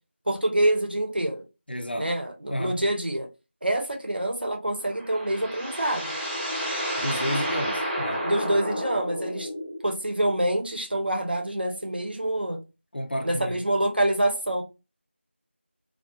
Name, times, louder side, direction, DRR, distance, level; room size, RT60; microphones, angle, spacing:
voice 1, 0.3-1.4 2.0-3.3 3.6-6.0 8.2-9.5 9.8-12.6 13.2-14.6, right 1 dB, 55° right, 0.7 m, -26 dB
voice 2, 1.7-2.1 2.5-2.8 7.0-8.3 12.9-13.6, equal, 55° left, 0.4 m, -31 dB
sound 1, 4.7-9.9, equal, 10° right, 0.5 m, -31 dB
2.3 x 2.3 x 2.5 m
figure-of-eight pair, 175°, 7 cm